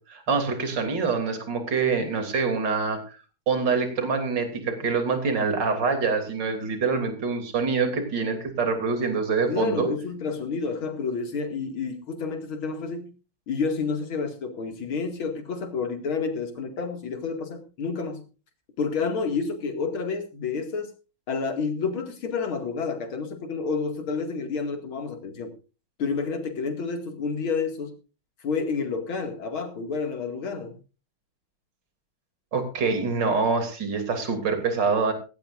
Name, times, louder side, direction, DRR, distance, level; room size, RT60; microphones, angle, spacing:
voice 1, 0.1-3.2 3.5-9.9 32.5-35.1, right 4 dB, 60° right, 6 dB, 3.6 m, -25 dB
voice 2, 9.5-13.1 13.5-18.2 18.8-20.9 21.3-25.5 26.0-27.9 28.4-30.8, left 5 dB, 85° left, 5 dB, 3.1 m, -29 dB
17.0 x 16.5 x 2.5 m, 0.33 s
omnidirectional pair, 2.2 m